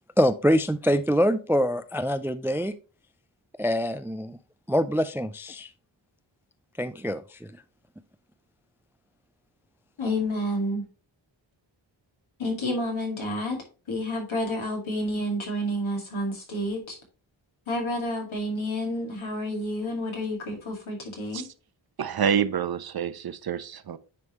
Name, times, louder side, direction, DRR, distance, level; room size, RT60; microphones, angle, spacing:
voice 1, 0.2-2.7 3.6-4.4 4.7-5.7 6.8-7.6, equal, 5° right, 0.3 m, -25 dB
voice 2, 10.0-10.9 12.4-17.0 17.7-21.5, left 1 dB, 75° left, 2.2 m, -30 dB
voice 3, 22.0-24.0, right 8 dB, 50° right, 0.6 m, -27 dB
9.6 x 3.5 x 3.0 m
cardioid pair, 45°, 47 cm